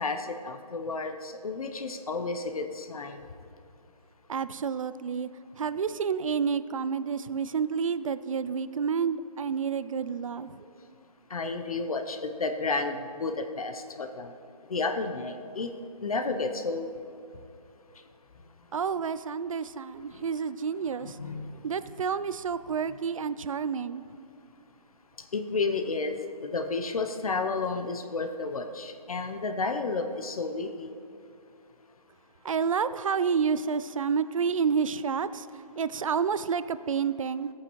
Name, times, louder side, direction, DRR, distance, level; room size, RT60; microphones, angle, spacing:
voice 1, 0.0-3.2 11.3-14.3 14.7-15.7 16.0-16.9 20.1-20.2 21.0-21.6 25.3-26.2 26.4-30.9, left 3 dB, 65° left, 6 dB, 0.8 m, -31 dB
voice 2, 4.3-5.3 5.6-10.7 18.7-21.2 21.6-24.2 32.4-37.5, right 6 dB, 55° right, 15 dB, 0.4 m, -29 dB
15.5 x 8.6 x 3.1 m, 2.5 s
hypercardioid pair, 160°, 20 cm